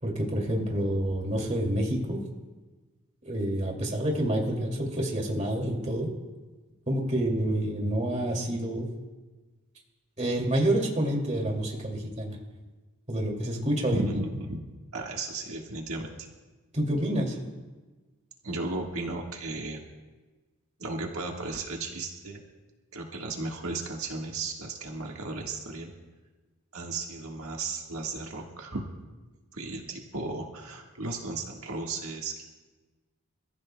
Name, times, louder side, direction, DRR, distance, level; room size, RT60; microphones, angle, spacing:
voice 1, 0.0-2.2 3.3-6.1 6.9-8.9 10.2-12.4 13.1-14.2 16.7-17.4, right 1 dB, 30° right, 0 dB, 2.5 m, -28 dB
voice 2, 13.9-14.6 14.9-16.1 18.4-19.8 20.8-22.4 22.9-25.9 26.7-28.8 29.5-32.4, right 3 dB, 80° right, 0 dB, 1.6 m, -35 dB
29.5 x 14.5 x 2.3 m, 1.3 s
head